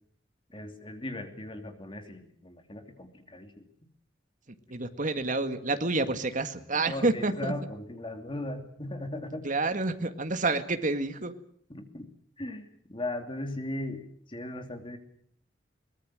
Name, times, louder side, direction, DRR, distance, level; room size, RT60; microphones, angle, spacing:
voice 1, 0.5-3.6 6.7-9.5 11.7-12.1 12.4-14.0 14.3-15.0, left 1 dB, 25° left, 6 dB, 2.8 m, -38 dB
voice 2, 4.7-7.5 9.4-11.3, right 3 dB, 45° right, 8 dB, 1.9 m, -28 dB
23.0 x 20.0 x 7.7 m, 0.62 s
head